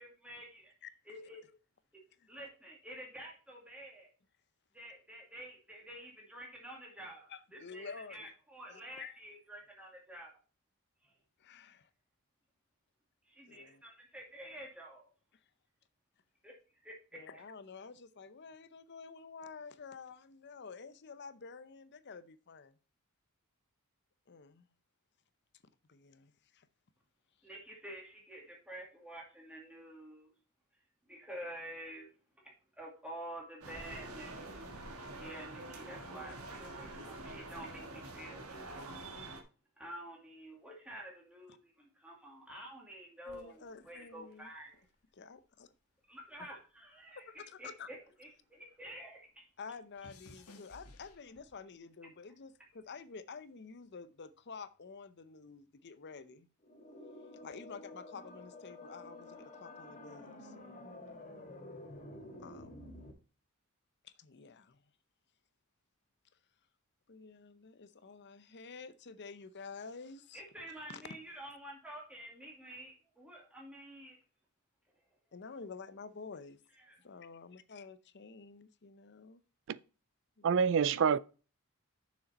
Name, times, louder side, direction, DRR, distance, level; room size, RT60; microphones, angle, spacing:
voice 1, 0.0-0.7 1.1-1.4 2.3-4.1 4.7-10.4 11.0-11.1 13.3-15.1 16.4-17.4 27.4-30.3 31.1-32.1 32.8-34.7 35.1-38.8 39.8-44.9 46.1-49.5 70.3-74.2 76.8-77.0, right 1 dB, 5° right, 2.2 m, -49 dB
voice 2, 7.3-8.3 8.7-9.2 11.4-11.9 13.5-13.8 17.1-22.8 24.3-24.7 25.9-26.7 43.3-44.5 45.1-45.7 47.1-47.9 49.6-56.5 57.4-60.5 61.1-61.2 62.4-62.9 64.0-64.8 67.1-70.4 70.9-71.0 75.3-76.6 77.0-79.4 80.4-80.9, left 5 dB, 50° left, 0.7 m, -50 dB
sound 1, 33.6-39.4, right 2 dB, 80° right, 1.5 m, -46 dB
sound 2, 43.3-45.8 46.1-48.7 49.0-51.8 52.5-52.9, left 2 dB, 85° left, 1.4 m, -60 dB
sound 3, 56.6-63.1, left 1 dB, 35° left, 1.8 m, -50 dB
voice 3, 80.4-81.2, right 6 dB, 55° right, 0.4 m, -27 dB
6.9 x 6.3 x 4.1 m
head